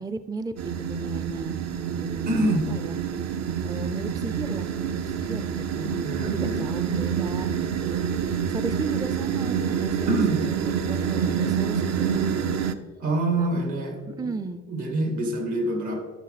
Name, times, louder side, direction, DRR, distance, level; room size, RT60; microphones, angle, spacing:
voice 1, 0.0-1.6 1.9-3.0 3.6-6.0 6.2-12.3 13.4-13.7 14.1-14.6, right 3 dB, 15° right, 11 dB, 0.4 m, -35 dB
sound 1, 0.6-12.7, right 7 dB, 60° right, 0.6 m, -27 dB
voice 2, 2.3-2.7 6.0-6.6 10.1-10.4 13.0-14.0 14.7-16.0, right 2 dB, 75° right, 4 dB, 2.2 m, -26 dB
12.0 x 6.6 x 4.1 m, 1.5 s
cardioid pair, 90°, 30 cm